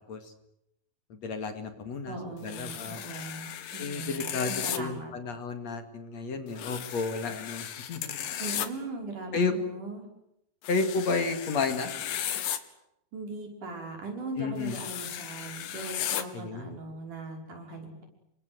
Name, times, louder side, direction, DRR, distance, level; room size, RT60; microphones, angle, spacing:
voice 1, 1.1-2.2 2.4-3.0 3.8-8.2 9.3-9.5 10.7-11.9 14.4-14.8 16.3-16.8, left 4 dB, 55° left, 7 dB, 3.1 m, -32 dB
voice 2, 2.1-5.2 8.4-10.1 13.1-18.0, right 3 dB, 60° right, 2 dB, 7.3 m, -39 dB
sound 1, 2.5-4.8 6.5-8.7 10.6-12.6 14.6-16.2, left 10 dB, 75° left, 3.2 m, -35 dB
29.0 x 24.0 x 8.0 m, 0.81 s
omnidirectional pair, 4.1 m